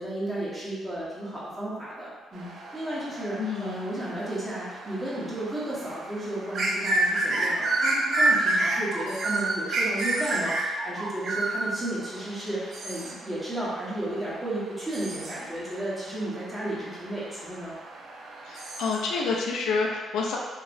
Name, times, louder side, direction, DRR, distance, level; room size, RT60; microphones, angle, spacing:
voice 1, 0.0-17.7, right 1 dB, 20° right, -8 dB, 1.2 m, -33 dB
sound 1, 2.3-19.4, right 2 dB, 60° right, 0.5 m, -30 dB
voice 2, 3.4-3.8 18.5-20.4, left 4 dB, 80° left, -1 dB, 0.5 m, -28 dB
3.0 x 2.9 x 2.6 m, 1.4 s
cardioid pair, 90°, 0 cm